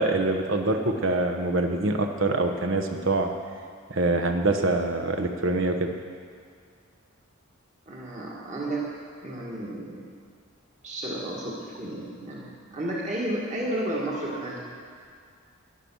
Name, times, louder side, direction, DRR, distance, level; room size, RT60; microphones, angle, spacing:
voice 1, 0.0-3.3 3.9-5.9, right 2 dB, 65° right, 5 dB, 1.1 m, -25 dB
voice 2, 7.9-8.9 9.2-10.0 10.8-14.8, right 1 dB, 35° right, -4 dB, 1.8 m, -32 dB
12.5 x 10.5 x 6.2 m, 2.1 s
head